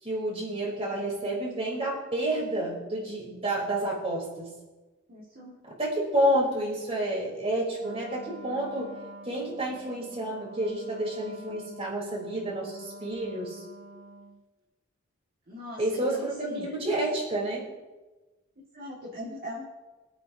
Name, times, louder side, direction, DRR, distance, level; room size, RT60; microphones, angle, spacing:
voice 1, 0.0-4.5 5.8-9.0 9.2-13.6 15.8-17.7, right 1 dB, 30° right, -4 dB, 4.0 m, -30 dB
voice 2, 5.1-5.6 15.5-16.7 18.7-19.6, left 1 dB, 50° right, -7 dB, 2.2 m, -40 dB
Wind instrument woodwind instrument, 7.8-14.4, right 1 dB, 90° right, 1.3 m, -46 dB
24.0 x 8.6 x 2.9 m, 1.2 s
head